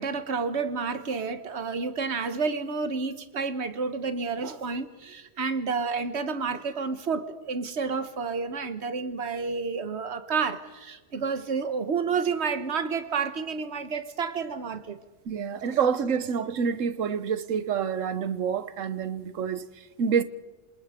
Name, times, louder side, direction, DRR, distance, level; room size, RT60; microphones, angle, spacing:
voice 1, 0.0-15.0, right 5 dB, 60° right, 1.5 m, -30 dB
voice 2, 15.3-20.2, right 7 dB, 80° right, 1.3 m, -27 dB
27.5 x 26.5 x 5.1 m
omnidirectional pair, 1.3 m